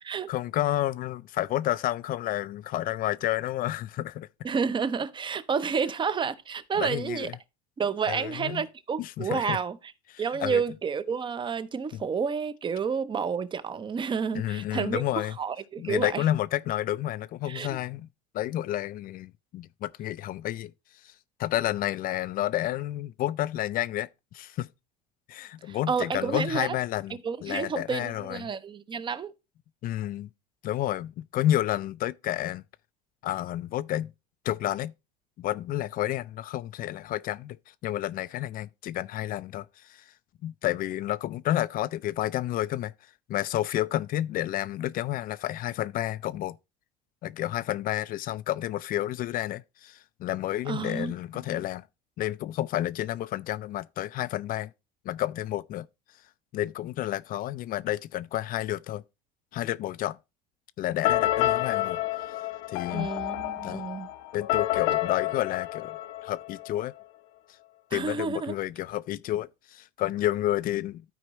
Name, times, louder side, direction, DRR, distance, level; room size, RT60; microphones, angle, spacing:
voice 1, 0.3-4.3 6.8-7.4 8.1-8.6 9.0-9.6 10.1-10.6 11.9-12.0 14.3-15.4 15.8-18.1 18.3-20.7 21.0-21.1 21.4-24.7 25.3-28.5 29.8-30.3 30.6-32.6 33.2-34.1 34.4-34.9 35.4-37.6 37.8-40.0 40.4-42.9 43.3-46.6 47.2-51.9 52.2-54.7 55.1-55.9 56.5-59.0 59.5-60.2 60.8-62.0 62.7-63.1 63.6-63.9 64.3-66.9 67.9-71.2, left 13 dB, 45° left, 0.4 m, -30 dB
voice 2, 4.4-7.3 7.8-9.9 10.2-16.2 17.5-17.8 25.7-26.7 27.2-29.3 50.7-51.1 51.5-51.6 62.9-64.1 67.9-68.5, right 6 dB, 25° right, 0.6 m, -30 dB
sound 1, 61.0-66.8, left 14 dB, 65° left, 0.8 m, -29 dB
13.0 x 4.5 x 3.0 m
supercardioid pair, 95°, 21 cm